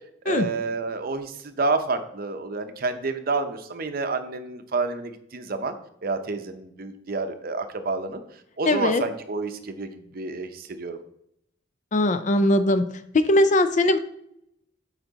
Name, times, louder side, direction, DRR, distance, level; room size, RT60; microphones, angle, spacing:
voice 1, 0.2-5.7 6.0-8.2 8.6-11.0, right 3 dB, 50° right, 8 dB, 0.7 m, -29 dB
voice 2, 8.7-9.0 11.9-12.8 13.1-14.0, left 1 dB, 40° left, 10 dB, 0.5 m, -20 dB
8.2 x 4.5 x 4.0 m, 0.75 s
head